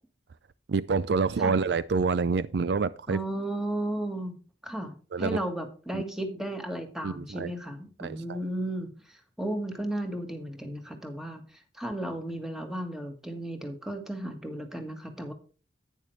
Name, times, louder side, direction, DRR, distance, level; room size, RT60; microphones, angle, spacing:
voice 1, 0.7-3.2 5.1-5.4 5.9-6.0 7.0-7.5 8.0-8.4, right 4 dB, 65° right, 0.4 m, -27 dB
voice 2, 3.1-4.4 4.6-15.3, right 1 dB, 5° right, 1.5 m, -34 dB
11.0 x 9.2 x 3.2 m
head